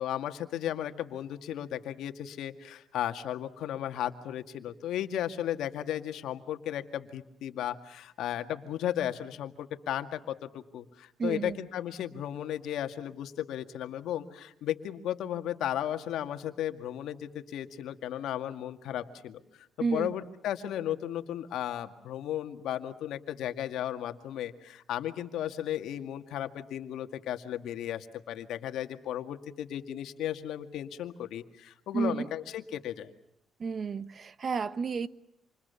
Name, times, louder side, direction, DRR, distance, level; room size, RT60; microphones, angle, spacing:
voice 1, 0.0-19.7 19.9-33.1, left 11 dB, 80° left, 2.0 m, -35 dB
voice 2, 11.2-11.6 19.8-20.1 31.9-32.3 33.6-35.1, right 5 dB, 45° right, 1.2 m, -31 dB
28.0 x 28.0 x 7.0 m
cardioid pair, 90°, 0 cm